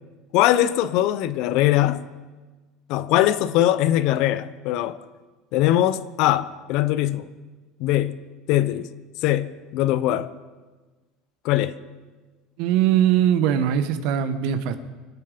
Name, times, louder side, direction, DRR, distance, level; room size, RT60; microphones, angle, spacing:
voice 1, 0.3-2.1 2.9-5.0 5.5-7.3 7.8-8.2 8.5-8.9 9.2-10.3 11.4-11.7, left 13 dB, 60° left, 0.7 m, -21 dB
voice 2, 12.6-14.8, right 10 dB, 65° right, 1.3 m, -21 dB
25.5 x 9.1 x 5.2 m
cardioid pair, 155°, 0 cm